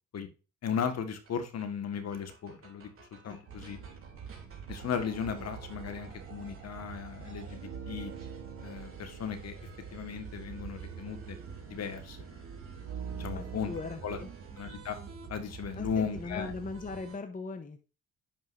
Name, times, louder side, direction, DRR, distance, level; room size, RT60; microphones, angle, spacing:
voice 1, 0.6-2.9 3.2-3.8 4.7-8.1 8.6-9.5 9.9-11.4 11.7-12.3 13.2-13.7 14.0-14.2 14.6-15.0 15.3-16.5, left 7 dB, 60° left, 8 dB, 1.7 m, -36 dB
sound 1, 0.9-1.0 1.3-1.4 1.6-1.7 1.9-17.2, right 3 dB, 45° right, 3.1 m, -52 dB
sound 2, 3.5-17.0, right 7 dB, 90° right, 1.4 m, -45 dB
voice 2, 13.3-14.3 15.7-17.8, left 4 dB, 25° left, 7 dB, 1.0 m, -40 dB
10.5 x 5.4 x 2.6 m, 0.33 s
cardioid pair, 90°, 30 cm